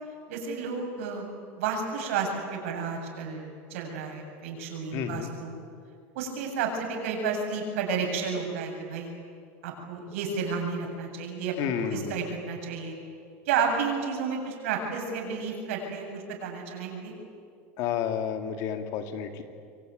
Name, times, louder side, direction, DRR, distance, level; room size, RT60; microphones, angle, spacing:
voice 1, 0.3-1.3 1.6-5.6 6.1-9.1 9.6-13.0 13.5-17.1, right 5 dB, 85° right, 2 dB, 7.6 m, -31 dB
voice 2, 4.9-5.3 11.6-12.2 17.8-19.4, left 8 dB, 50° left, 7 dB, 2.5 m, -31 dB
26.5 x 23.5 x 9.3 m, 2.3 s
supercardioid pair, 160°, 7 cm